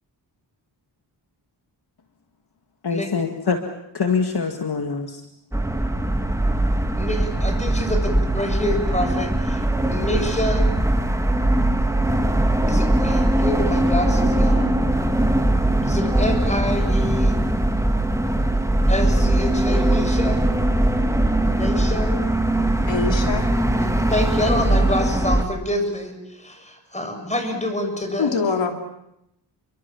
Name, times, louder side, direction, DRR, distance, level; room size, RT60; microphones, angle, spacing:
voice 1, 2.8-3.6 3.9-5.2, left 5 dB, 60° left, 4 dB, 2.2 m, -24 dB
sound 1, 5.5-25.5, right 1 dB, 5° right, 2.3 m, -20 dB
voice 2, 7.0-9.6 9.9-10.6 12.7-14.8 15.8-17.3 18.9-20.5 21.6-22.2 23.8-28.5, left 1 dB, 15° left, 6 dB, 6.6 m, -27 dB
voice 3, 22.9-23.5 28.2-28.7, left 5 dB, 85° left, 4 dB, 3.2 m, -23 dB
30.0 x 24.0 x 7.3 m, 0.81 s
wide cardioid pair, 105°, 44 cm